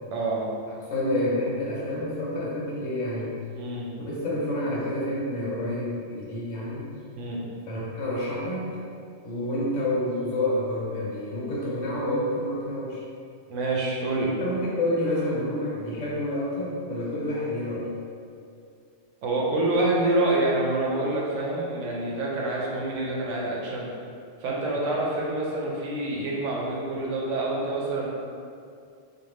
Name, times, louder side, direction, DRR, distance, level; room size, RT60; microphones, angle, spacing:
voice 1, 0.1-0.4 3.6-3.9 7.2-7.4 13.5-14.3 19.2-23.9 24.4-28.1, right 2 dB, 75° right, -4 dB, 0.9 m, -27 dB
voice 2, 0.9-3.3 4.0-6.9 7.7-8.8 9.2-13.0 14.4-17.9, left 1 dB, 75° left, -6 dB, 1.2 m, -28 dB
2.5 x 2.5 x 3.1 m, 2.4 s
omnidirectional pair, 1.3 m